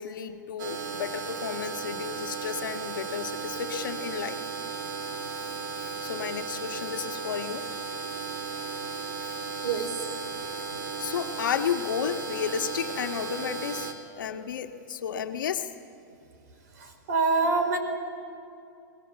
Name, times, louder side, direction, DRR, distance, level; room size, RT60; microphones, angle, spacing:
voice 1, 0.0-4.4 5.8-7.6 11.0-13.9 14.2-15.7, left 8 dB, 80° left, 6 dB, 1.5 m, -32 dB
sound 1, 0.6-13.9, right 5 dB, 75° right, 3.3 m, -35 dB
voice 2, 9.6-10.1 10.7-10.8 16.7-17.8, right 4 dB, 55° right, 7 dB, 3.6 m, -26 dB
25.5 x 20.0 x 7.1 m, 2.7 s
supercardioid pair, 175°, 11 cm